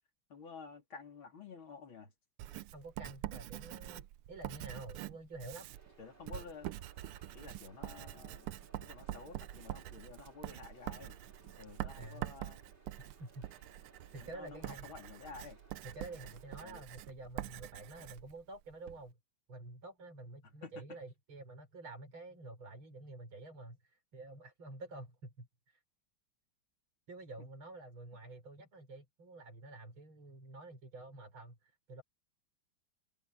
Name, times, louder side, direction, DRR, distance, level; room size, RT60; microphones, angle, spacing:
voice 1, 0.3-2.1 6.0-6.8 7.3-11.2 11.6-12.7 14.1-15.6 16.6-16.8 20.4-20.8 27.4-27.5, left 5 dB, 70° left, 4.2 m, -51 dB
Writing, 2.4-19.0, right 14 dB, 90° right, 1.6 m, -45 dB
voice 2, 2.7-5.7 12.0-12.3 13.2-13.5 14.1-14.9 15.8-19.2 19.5-25.8 27.1-32.0, right 2 dB, 70° right, 5.5 m, -49 dB
sound 1, 5.7-16.8, right 2 dB, 25° right, 3.6 m, -63 dB
open air
omnidirectional pair, 2.3 m